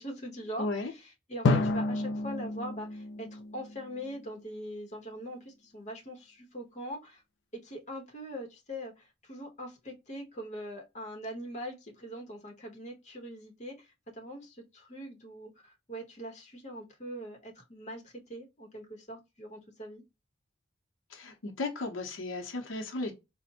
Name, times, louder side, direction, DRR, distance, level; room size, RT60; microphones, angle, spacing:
voice 1, 0.0-7.2 7.5-20.0, equal, 35° left, 0.9 m, -42 dB
voice 2, 0.6-0.9 21.1-23.1, left 2 dB, 85° left, 0.7 m, -35 dB
Drum, 1.4-4.3, left 2 dB, 65° left, 0.4 m, -30 dB
4.1 x 2.1 x 2.7 m
head